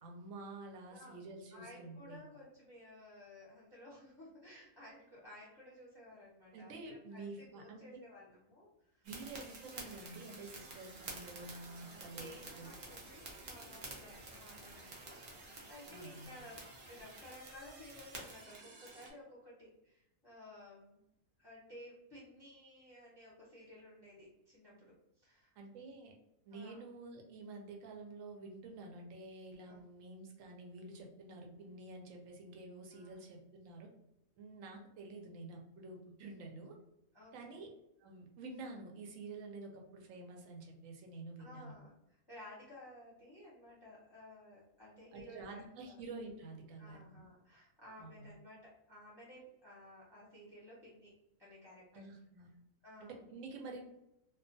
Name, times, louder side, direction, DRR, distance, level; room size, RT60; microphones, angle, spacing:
voice 1, 0.0-2.2 6.5-7.8 9.0-12.3 12.6-12.7 15.9-16.3 25.6-26.1 26.5-33.9 34.4-36.8 37.3-37.7 38.0-41.7 45.1-47.2 48.0-48.2 51.9-52.5 53.0-53.9, right 3 dB, 75° right, 1 dB, 1.0 m, -49 dB
voice 2, 0.9-1.2 1.5-9.1 11.7-21.0 21.4-25.5 26.5-26.8 29.6-29.8 32.9-33.2 37.1-37.6 41.4-46.0 46.8-51.1 51.4-52.1 52.8-53.3, left 1 dB, 25° left, -8 dB, 0.6 m, -56 dB
sound 1, 9.0-19.1, right 2 dB, 55° right, 0.6 m, -50 dB
2.4 x 2.3 x 2.6 m, 0.86 s
omnidirectional pair, 1.5 m